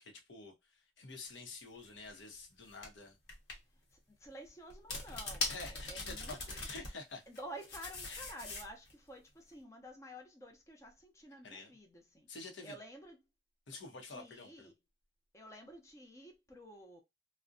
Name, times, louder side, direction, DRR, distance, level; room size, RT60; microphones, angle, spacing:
voice 1, 0.0-3.2 5.5-7.2 8.1-8.3 11.3-11.8 12.3-12.8 13.7-14.7, left 3 dB, 85° left, 0.7 m, -49 dB
sound 1, 1.8-2.0 2.8-2.9 3.3-3.6 4.7-6.9 7.3-8.9, left 3 dB, 60° left, 0.9 m, -41 dB
voice 2, 4.2-5.5 5.9-6.6 7.3-12.3 12.6-13.2 14.1-14.7 15.3-17.0, equal, 15° left, 0.5 m, -51 dB
2.5 x 2.1 x 2.5 m
head